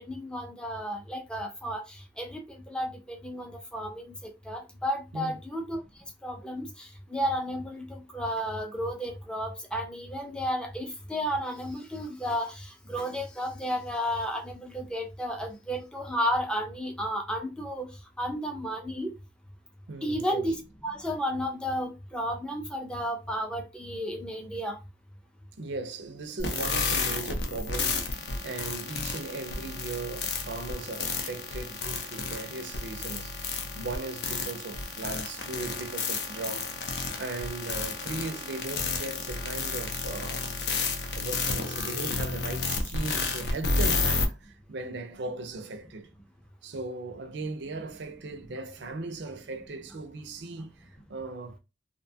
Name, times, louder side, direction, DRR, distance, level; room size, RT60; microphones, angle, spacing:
voice 1, 0.1-1.8 2.2-2.4 2.7-5.8 6.2-6.7 7.1-17.9 18.2-19.1 20.0-24.8, equal, 5° left, 0.5 m, -32 dB
voice 2, 19.9-20.4 25.6-36.9 37.2-40.8 41.1-46.1 46.6-51.6, right 3 dB, 75° right, 0.5 m, -38 dB
sound 1, 26.4-44.3, left 4 dB, 70° left, 0.6 m, -31 dB
2.6 x 2.2 x 2.7 m
head